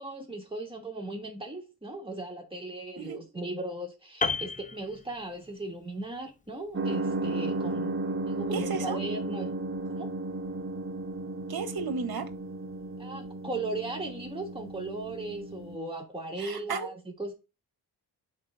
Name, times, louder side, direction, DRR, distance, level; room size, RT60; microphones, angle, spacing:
voice 1, 0.0-8.0 8.3-9.5 9.9-10.1 13.0-17.3, right 2 dB, 10° right, 2.9 m, -37 dB
Piano, 4.2-5.6 5.9-6.2, left 4 dB, 20° left, 0.8 m, -32 dB
sound 1, 6.7-15.8, right 2 dB, 30° right, 1.0 m, -34 dB
voice 2, 8.5-9.0 11.5-12.3 16.4-16.9, right 5 dB, 55° right, 1.2 m, -33 dB
9.2 x 4.2 x 2.7 m
cardioid pair, 55°, 43 cm